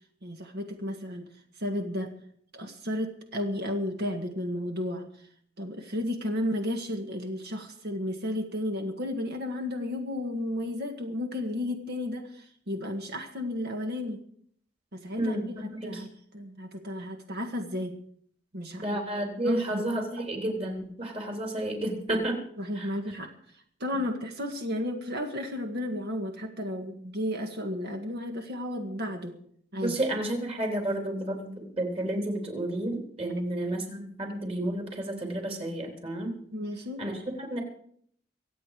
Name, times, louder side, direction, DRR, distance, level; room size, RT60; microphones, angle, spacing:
voice 1, 0.2-1.3 1.6-2.1 2.5-5.1 5.6-14.2 14.9-18.0 18.5-19.0 19.4-19.9 20.2-20.3 22.6-23.3 23.8-29.4 29.7-30.0 36.5-37.0, left 1 dB, 60° right, 4 dB, 1.8 m, -33 dB
voice 2, 15.2-16.1 18.8-22.4 22.8-22.9 29.7-36.4 37.0-37.6, right 1 dB, 35° right, 2 dB, 3.7 m, -31 dB
24.5 x 8.7 x 5.0 m, 0.63 s
head